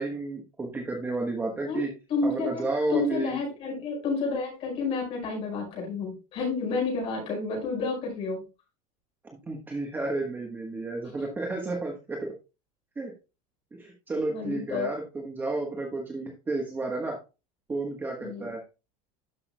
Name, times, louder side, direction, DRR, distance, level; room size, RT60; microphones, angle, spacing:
voice 1, 0.0-1.9 2.2-3.4 9.5-12.3 13.0-13.1 13.7-17.2 17.7-18.6, right 2 dB, 10° right, 1 dB, 1.2 m, -32 dB
voice 2, 2.1-8.5 14.3-14.9 18.2-18.5, left 3 dB, 35° left, -1 dB, 5.0 m, -30 dB
12.0 x 6.0 x 2.2 m, 0.29 s
cardioid pair, 175°, 17 cm